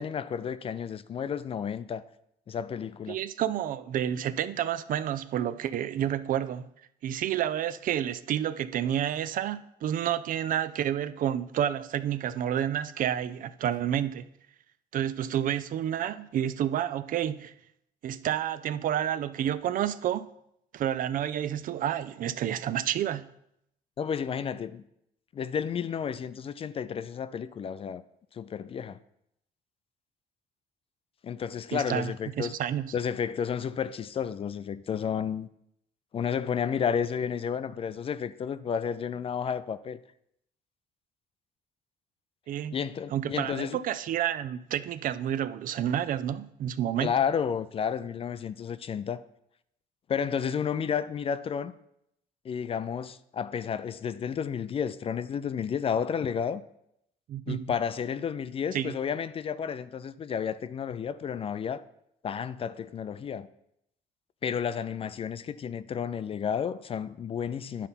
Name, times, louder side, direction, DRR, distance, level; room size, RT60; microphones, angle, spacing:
voice 1, 0.0-2.0 2.5-3.2 24.0-24.8 25.3-28.0 28.3-29.0 31.2-32.6 32.9-35.5 36.1-40.0 42.7-43.8 47.0-49.2 50.1-51.7 52.4-56.6 57.5-61.8 62.2-63.5 64.4-67.9, left 7 dB, 35° left, 0.4 m, -31 dB
voice 2, 3.1-6.7 7.0-14.3 14.9-17.5 18.0-20.3 20.7-23.3 31.7-32.9 42.5-42.7 43.1-47.1 57.3-57.8 58.7-59.0, right 10 dB, 55° right, 0.4 m, -30 dB
9.9 x 4.1 x 5.7 m
cardioid pair, 110°, 17 cm